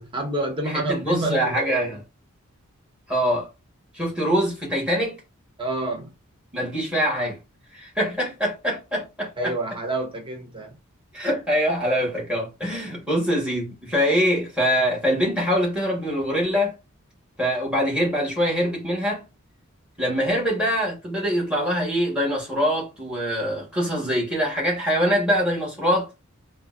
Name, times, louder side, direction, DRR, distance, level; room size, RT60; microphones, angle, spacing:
voice 1, 0.0-2.0 5.6-6.1 9.4-10.8, right 2 dB, 25° right, 0.7 m, -28 dB
voice 2, 0.7-2.0 3.1-3.5 3.9-5.2 6.5-7.4 7.7-9.5 11.1-16.7 17.4-19.2 20.0-26.1, equal, 5° right, 1.2 m, -24 dB
3.8 x 2.1 x 2.4 m
head